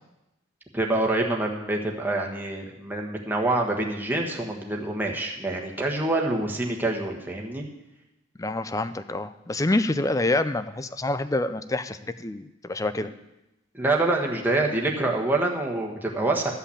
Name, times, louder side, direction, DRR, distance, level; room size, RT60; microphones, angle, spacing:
voice 1, 0.7-7.6 13.7-16.5, right 2 dB, 10° right, 0 dB, 1.4 m, -26 dB
voice 2, 8.4-13.1, left 2 dB, 15° left, 12 dB, 0.4 m, -27 dB
13.0 x 5.7 x 8.5 m, 0.95 s
head